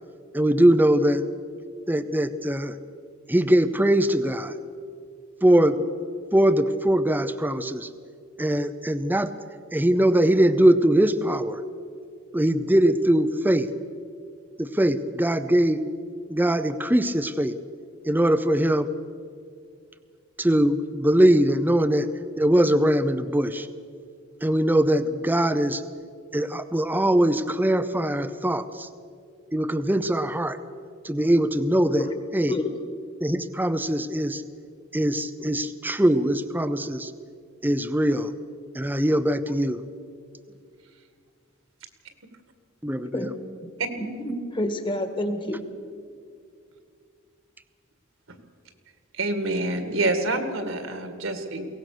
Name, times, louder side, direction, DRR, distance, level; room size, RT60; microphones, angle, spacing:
voice 1, 0.3-1.3 1.9-2.8 3.3-4.6 5.4-5.8 6.3-7.9 8.4-9.3 9.7-11.6 12.3-13.7 14.6-15.8 16.3-17.6 18.0-18.9 20.4-22.1 22.4-23.7 24.4-25.8 26.3-28.9 29.5-30.6 31.0-32.6 33.2-34.4 34.9-37.1 37.6-38.3 38.7-39.8 42.8-43.3, right 1 dB, 10° right, 10 dB, 0.6 m, -22 dB
voice 2, 44.0-45.6, left 1 dB, 25° left, 7 dB, 1.7 m, -29 dB
voice 3, 49.1-51.7, right 2 dB, 70° right, 8 dB, 2.1 m, -27 dB
22.5 x 18.0 x 6.7 m, 2.3 s
head